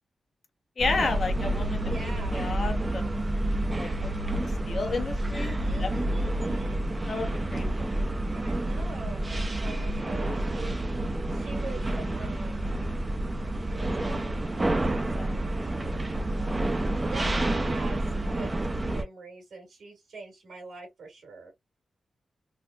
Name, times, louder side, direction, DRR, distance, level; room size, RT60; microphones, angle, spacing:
voice 1, 0.8-1.8 2.1-3.1 3.8-6.3 7.0-7.9 10.3-10.5 15.2-15.3 16.4-16.6, left 3 dB, 55° left, 0.9 m, -33 dB
sound 1, 0.8-19.0, right 1 dB, 25° right, 0.5 m, -29 dB
voice 2, 1.8-2.4 5.6-6.8 8.3-10.8 11.3-12.8 13.7-16.2 16.6-21.5, right 3 dB, 85° right, 2.0 m, -44 dB
3.9 x 2.1 x 2.3 m
wide cardioid pair, 95°, 0 cm